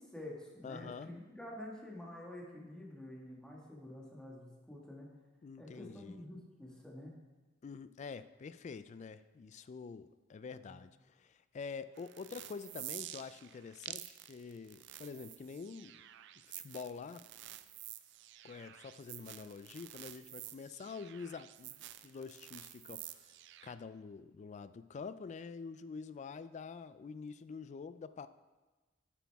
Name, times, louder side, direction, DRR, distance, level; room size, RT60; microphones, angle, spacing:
voice 1, 0.0-5.1 5.6-7.2 10.5-10.8, left 1 dB, 5° left, -3 dB, 1.6 m, -48 dB
voice 2, 0.6-1.1 5.4-6.2 7.6-16.0 16.6-17.2 18.4-23.4 23.6-28.3, left 5 dB, 35° left, 14 dB, 0.3 m, -47 dB
sound 1, 11.9-23.7, right 14 dB, 65° right, 0.4 m, -50 dB
9.1 x 8.1 x 3.5 m, 1.2 s
head